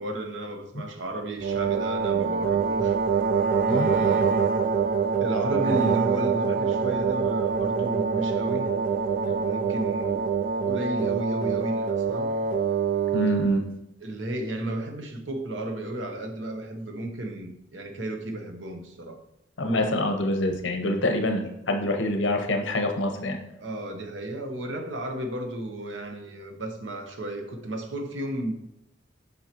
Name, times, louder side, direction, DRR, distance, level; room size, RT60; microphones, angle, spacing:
voice 1, 0.0-3.0 3.7-4.3 5.2-8.7 9.2-10.2 10.7-12.3 14.0-19.2 23.6-28.5, right 1 dB, 75° right, 5 dB, 1.0 m, -33 dB
sound 1, 1.4-13.6, right 6 dB, 50° right, 0.3 m, -25 dB
voice 2, 13.1-13.6 19.6-23.4, left 1 dB, 75° left, 4 dB, 0.9 m, -25 dB
7.7 x 5.5 x 2.9 m, 0.85 s
head